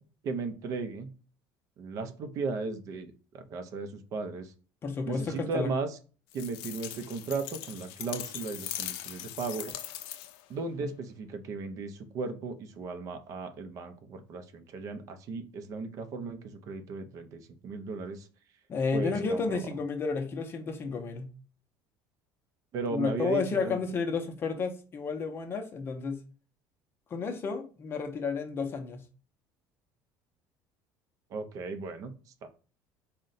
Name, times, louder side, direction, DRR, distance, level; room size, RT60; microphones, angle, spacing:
voice 1, 0.2-1.1 1.8-4.5 5.1-6.0 6.3-9.7 10.5-18.3 18.9-19.6 22.7-23.8 31.3-32.1 32.4-32.5, right 4 dB, 45° right, 0.5 m, -36 dB
voice 2, 4.8-5.7 10.8-10.9 18.7-21.3 22.9-26.2 27.1-29.0, left 5 dB, 30° left, 0.5 m, -32 dB
sound 1, 6.3-10.5, left 12 dB, 85° left, 0.4 m, -40 dB
3.7 x 2.1 x 3.9 m
cardioid pair, 150°, 8 cm